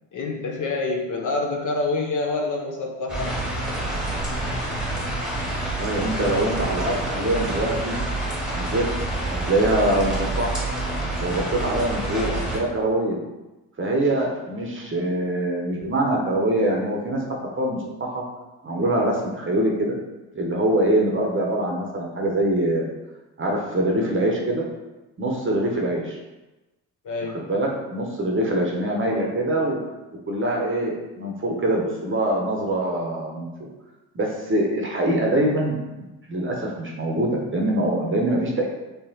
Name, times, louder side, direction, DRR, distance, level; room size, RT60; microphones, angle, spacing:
voice 1, 0.1-3.4 27.0-27.4, left 3 dB, 40° left, 1 dB, 0.7 m, -27 dB
sound 1, 3.1-12.6, right 2 dB, ahead, 1.2 m, -27 dB
voice 2, 5.8-7.9 8.5-8.9 9.2-10.6 11.2-13.2 13.8-17.2 17.6-18.2 18.6-19.9 20.3-22.9 23.4-24.6 25.2-26.2 27.5-29.8 30.3-33.7 34.1-35.8 36.3-38.7, right 1 dB, 25° right, -1 dB, 0.9 m, -24 dB
3.4 x 3.0 x 2.8 m, 1.1 s
hypercardioid pair, 45°, 48 cm